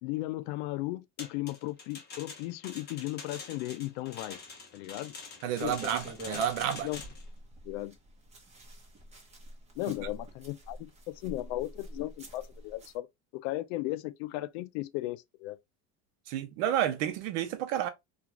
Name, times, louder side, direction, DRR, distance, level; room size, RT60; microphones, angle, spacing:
voice 1, 0.0-4.4 4.7-5.1 5.4-5.8 6.6-7.0 7.7-8.0 9.8-13.1 13.3-15.6, left 17 dB, 75° left, 0.5 m, -36 dB
sound 1, 1.2-7.2, left 4 dB, 30° left, 0.9 m, -45 dB
voice 2, 5.4-6.9 16.3-17.9, right 10 dB, 80° right, 0.7 m, -30 dB
sound 2, 5.6-13.0, equal, 20° right, 0.9 m, -47 dB
2.5 x 2.3 x 2.9 m
supercardioid pair, 125°, 34 cm